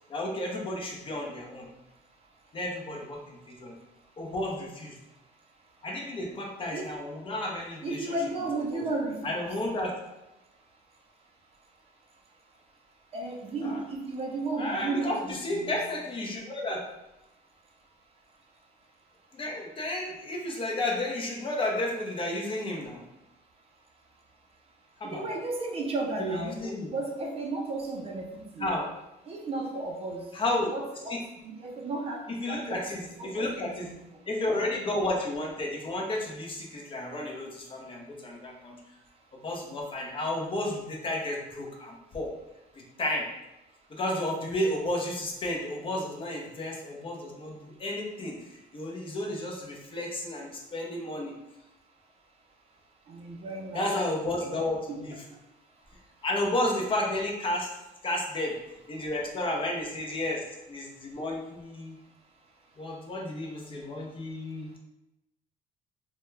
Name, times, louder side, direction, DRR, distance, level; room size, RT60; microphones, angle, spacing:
voice 1, 0.1-1.7 2.5-3.7 4.2-5.0 5.8-8.2 8.7-8.9 9.2-10.0 13.6-13.8 14.6-16.8 19.3-23.0 25.0-25.2 26.2-26.9 28.6-28.9 30.3-30.7 31.1-31.2 32.4-33.9 34.3-38.8 39.4-42.3 42.7-43.3 43.9-51.3 53.7-55.1 56.2-57.7 58.0-58.5 58.9-62.0 62.8-64.8, left 1 dB, 30° left, -1 dB, 0.5 m, -32 dB
voice 2, 7.8-9.5 13.1-15.8 25.1-28.7 29.3-30.3 30.7-34.0 53.1-53.9 54.9-55.0, right 2 dB, 35° right, 0 dB, 0.4 m, -34 dB
2.2 x 2.1 x 3.1 m, 0.92 s
cardioid pair, 110°, 17 cm